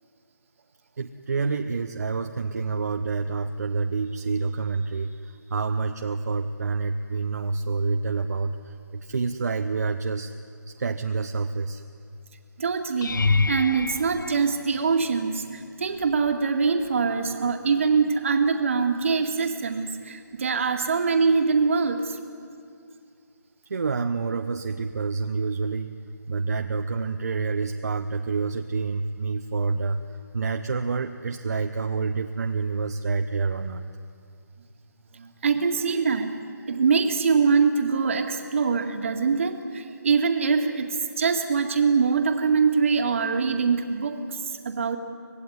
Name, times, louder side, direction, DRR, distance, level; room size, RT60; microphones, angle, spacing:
voice 1, 1.0-10.3 10.7-11.8 23.6-25.9 26.3-33.8, right 4 dB, 55° right, 6 dB, 1.0 m, -28 dB
voice 2, 12.6-22.2 35.1-36.3 36.7-45.0, right 5 dB, 40° right, 5 dB, 2.1 m, -23 dB
sound 1, 13.0-15.3 16.0-16.4 16.8-16.9 21.3-21.4, left 3 dB, 80° left, 0.6 m, -27 dB
25.5 x 18.5 x 9.6 m, 2.4 s
hypercardioid pair, 165°, 10 cm